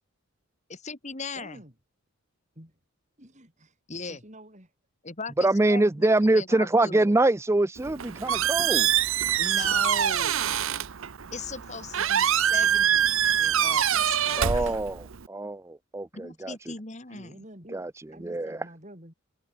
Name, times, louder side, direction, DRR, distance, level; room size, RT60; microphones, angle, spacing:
voice 1, 0.7-1.6 3.9-4.2 5.0-7.1 9.4-10.5 11.3-14.8 16.1-17.4, left 4 dB, 30° left, 2.1 m, -39 dB
voice 2, 1.3-1.7 2.5-2.8 3.2-3.8 4.1-4.7 17.1-19.1, right 1 dB, 30° right, 6.7 m, -48 dB
voice 3, 5.4-8.9 14.4-16.6 17.7-17.9 18.2-18.6, right 2 dB, 10° right, 0.4 m, -24 dB
Squeak, 7.8-15.3, right 9 dB, 65° right, 0.7 m, -25 dB
head